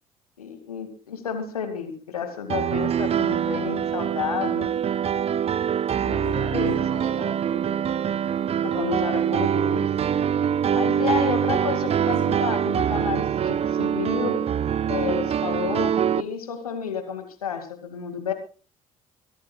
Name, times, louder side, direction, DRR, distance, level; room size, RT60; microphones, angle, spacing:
voice 1, 0.4-4.7 6.0-6.8 8.6-9.9 10.7-14.4 14.9-18.3, left 7 dB, 80° left, 7 dB, 2.3 m, -31 dB
Piano, 2.5-16.2, right 8 dB, 35° right, 0.6 m, -24 dB
voice 2, 6.0-8.1 11.7-12.3, right 3 dB, 75° right, 3 dB, 4.8 m, -41 dB
23.0 x 16.5 x 2.3 m, 0.36 s
figure-of-eight pair, 50°, 18 cm